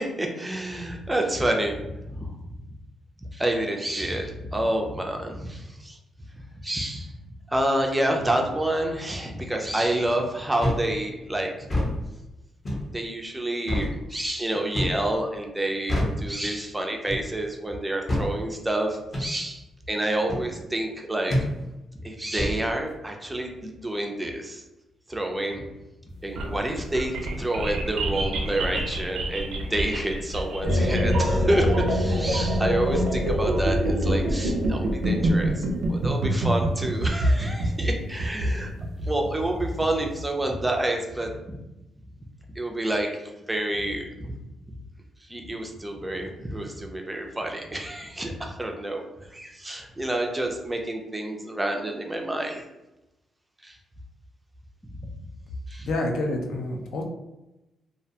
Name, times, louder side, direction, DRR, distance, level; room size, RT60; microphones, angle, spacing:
voice 1, 0.0-2.3 3.3-6.0 6.3-7.1 7.5-11.7 12.9-21.3 22.0-24.6 25.1-25.6 26.2-38.7 39.0-41.6 42.6-44.3 45.2-52.7 53.6-53.8 55.7-55.9, right 1 dB, 10° right, 2 dB, 0.3 m, -28 dB
sound 1, 10.6-10.9 11.6-11.9 12.6-12.9 13.7-13.9 14.7-15.0 15.9-16.2 17.1-17.3 18.1-18.3 19.1-19.3 20.3-20.5 21.3-21.5 22.4-22.6, left 1 dB, 25° left, 0.7 m, -26 dB
sound 2, 26.1-40.2, right 2 dB, 85° right, 0.4 m, -27 dB
sound 3, 30.6-37.9, left 1 dB, 60° left, 0.8 m, -26 dB
voice 2, 55.8-57.0, left 2 dB, 80° left, 2 dB, 0.4 m, -28 dB
2.3 x 2.1 x 2.7 m, 0.97 s
cardioid pair, 130°, 0 cm